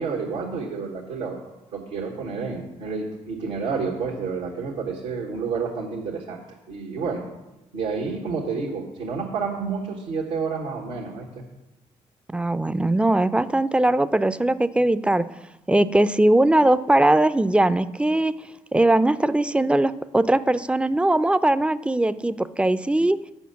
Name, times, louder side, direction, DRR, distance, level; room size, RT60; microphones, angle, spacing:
voice 1, 0.0-1.4 1.7-6.4 6.7-7.3 7.7-11.2, right 5 dB, 85° right, -4 dB, 1.4 m, -29 dB
voice 2, 12.3-15.3 15.7-18.3 18.7-23.2, right 1 dB, 5° right, 14 dB, 0.5 m, -20 dB
7.1 x 5.7 x 7.0 m, 0.98 s
hypercardioid pair, 40°, 16 cm